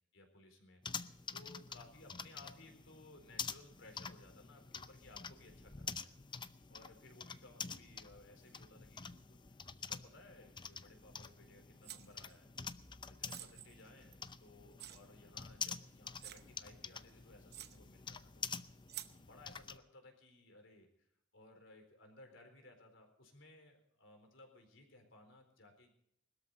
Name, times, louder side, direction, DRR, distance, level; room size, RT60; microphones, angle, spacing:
voice 1, 0.1-0.8 1.3-6.1 6.7-12.5 13.0-18.5 19.1-21.1 21.3-25.9, left 2 dB, 70° left, 5 dB, 4.1 m, -60 dB
sound 1, 0.8-19.8, left 6 dB, 25° left, 0.6 m, -48 dB
sound 2, 11.8-12.3 13.3-14.3 14.8-15.0 15.6-15.7 16.2-16.5 17.1-17.2 17.5-17.8 18.9-19.2, right 12 dB, 55° right, 0.9 m, -49 dB
20.5 x 13.0 x 4.1 m, 0.75 s
head